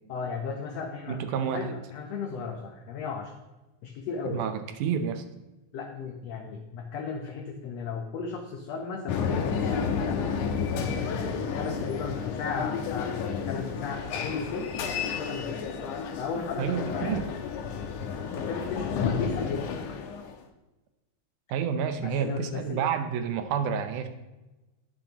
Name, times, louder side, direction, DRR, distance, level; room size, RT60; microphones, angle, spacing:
voice 1, 0.1-3.3 3.8-4.5 5.7-10.2 11.1-14.7 15.1-15.6 16.2-17.2 18.3-19.8 22.0-22.8, left 5 dB, 65° left, 2 dB, 1.9 m, -35 dB
voice 2, 1.1-1.7 4.3-5.2 16.6-17.3 21.5-24.1, right 7 dB, 85° right, 8 dB, 2.2 m, -29 dB
sound 1, 9.1-20.4, left 6 dB, 85° left, 2.5 m, -31 dB
19.5 x 7.2 x 2.9 m, 1.0 s
omnidirectional pair, 3.5 m